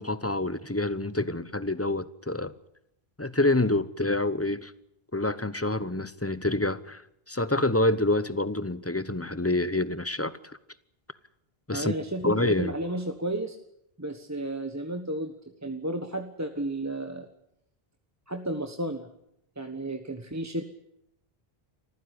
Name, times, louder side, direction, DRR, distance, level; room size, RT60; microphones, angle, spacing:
voice 1, 0.0-2.5 3.2-4.7 5.1-7.0 7.3-10.6 11.7-11.9 12.2-12.7, left 2 dB, 15° left, 0.9 m, -27 dB
voice 2, 11.7-13.6 14.0-15.3 15.6-17.3 18.3-19.1 19.6-20.6, right 1 dB, 15° right, 1.3 m, -32 dB
25.0 x 15.0 x 9.9 m
omnidirectional pair, 1.1 m